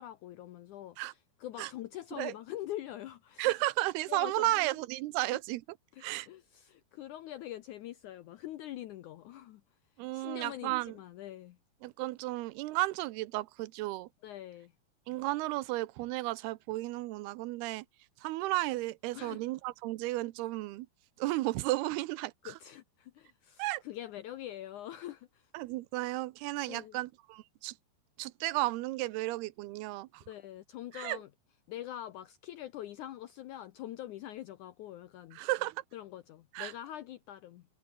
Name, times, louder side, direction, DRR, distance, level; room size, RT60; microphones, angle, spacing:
voice 1, 0.0-3.5 4.1-4.7 5.9-9.6 10.1-11.6 14.2-14.7 19.1-19.4 22.4-25.5 26.7-27.0 30.3-31.3 31.7-35.4 35.9-37.6, left 13 dB, 75° left, 1.8 m, -44 dB
voice 2, 3.4-5.6 6.0-6.3 10.0-10.9 11.8-14.1 15.1-17.9 18.2-20.9 21.2-22.3 23.6-23.8 25.5-27.7 28.2-30.2 30.9-31.2 35.3-35.8 36.5-36.7, right 18 dB, 85° right, 2.8 m, -33 dB
omnidirectional pair, 4.5 m